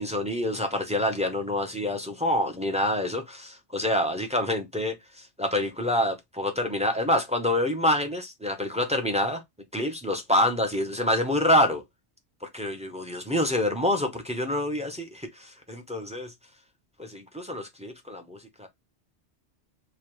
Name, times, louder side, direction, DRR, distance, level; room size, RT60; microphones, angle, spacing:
voice 1, 0.0-9.4 9.7-11.8 12.4-16.3 17.0-18.7, left 1 dB, 10° right, 0.5 m, -27 dB
4.8 x 2.2 x 3.0 m
omnidirectional pair, 1.2 m